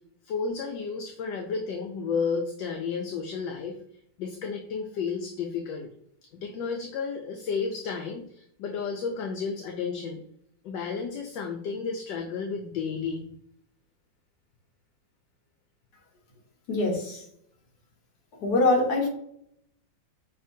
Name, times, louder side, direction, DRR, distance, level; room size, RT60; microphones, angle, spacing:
voice 1, 0.2-3.8 4.2-5.9 6.4-10.2 10.6-13.2, left 5 dB, 75° left, 2 dB, 1.2 m, -32 dB
voice 2, 16.7-17.2 18.4-19.1, left 2 dB, 55° left, -1 dB, 1.6 m, -23 dB
6.6 x 2.8 x 2.6 m, 0.68 s
omnidirectional pair, 2.2 m